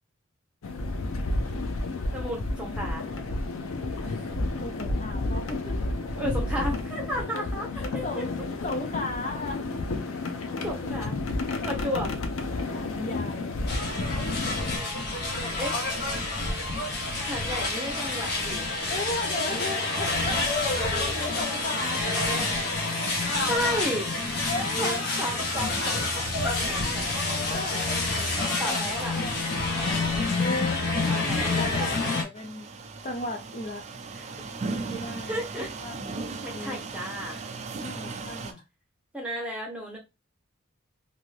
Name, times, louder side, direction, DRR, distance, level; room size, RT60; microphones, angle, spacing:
sound 1, 0.6-14.8, left 2 dB, 90° left, 0.6 m, -31 dB
voice 1, 2.1-3.0 6.1-7.7 7.9-8.2 10.6-11.1 11.6-12.1 15.6-15.8 17.2-18.6 23.5-24.1 24.8-27.8 28.6-29.2 31.1-31.5 34.1-34.2 35.3-35.7 36.4-37.4 39.1-40.0, equal, 5° right, 0.9 m, -33 dB
voice 2, 4.0-5.9 7.3-8.4 8.6-9.7 12.7-13.7 18.9-22.4 24.2-25.0 27.2-29.4 30.1-32.7 33.0-33.9 34.9-35.5 35.8-36.2 36.5-36.8 37.8-38.6, left 2 dB, 35° left, 0.4 m, -36 dB
sound 2, 13.7-32.2, left 2 dB, 50° left, 0.9 m, -28 dB
sound 3, 32.3-38.5, right 3 dB, 30° right, 0.4 m, -37 dB
2.7 x 2.6 x 3.1 m
head